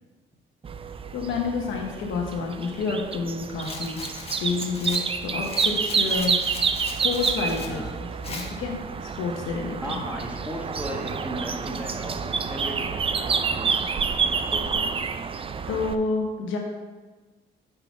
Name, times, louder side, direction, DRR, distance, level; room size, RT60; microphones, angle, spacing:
sound 1, 0.6-16.0, right 5 dB, 30° right, 0.4 m, -28 dB
voice 1, 1.1-4.0 4.4-6.4 7.0-7.8 8.3-8.7 9.2-10.0 15.7-16.6, left 4 dB, 85° left, 0 dB, 1.1 m, -29 dB
Rattle, 3.6-7.7 8.2-8.5, left 3 dB, 30° left, 1.2 m, -39 dB
voice 2, 7.6-7.9 9.7-14.9, equal, 5° right, 0 dB, 1.2 m, -36 dB
5.6 x 4.0 x 6.1 m, 1.3 s
cardioid pair, 90°, 20 cm